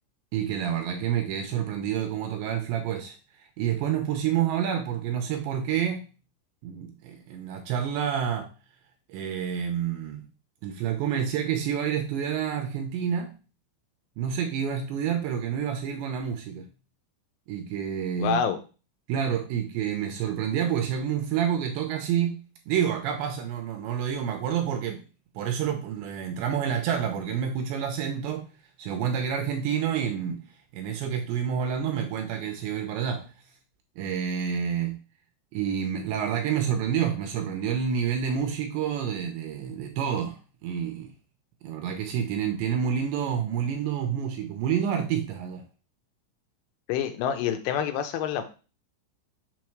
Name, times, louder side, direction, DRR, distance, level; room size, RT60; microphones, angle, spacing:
voice 1, 0.3-3.2 3.6-6.0 6.6-8.5 9.1-10.3 10.6-13.4 14.2-16.7 17.5-18.4 19.1-25.0 25.4-28.5 28.8-30.5 30.7-33.3 34.0-35.1 35.5-41.1 41.6-45.6, right 8 dB, 85° right, 5 dB, 2.7 m, -28 dB
voice 2, 18.2-18.6 46.9-48.4, left 8 dB, 80° left, 7 dB, 3.3 m, -27 dB
7.1 x 3.2 x 5.9 m, 0.34 s
omnidirectional pair, 5.7 m